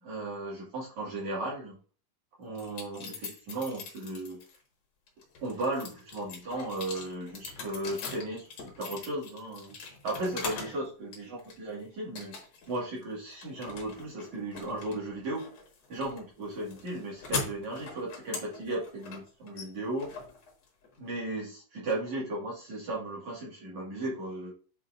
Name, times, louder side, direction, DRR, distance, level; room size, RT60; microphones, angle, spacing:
voice 1, 0.0-1.8 2.4-4.4 5.4-9.8 10.0-12.4 12.7-15.5 15.9-20.1 21.0-24.5, right 2 dB, 50° right, -5 dB, 2.3 m, -35 dB
sound 1, 2.5-4.6 5.1-10.8 11.1-11.7 12.1-12.7 13.0-21.0, left 4 dB, 90° left, 1.4 m, -41 dB
9.7 x 4.1 x 2.5 m, 0.36 s
omnidirectional pair, 5.9 m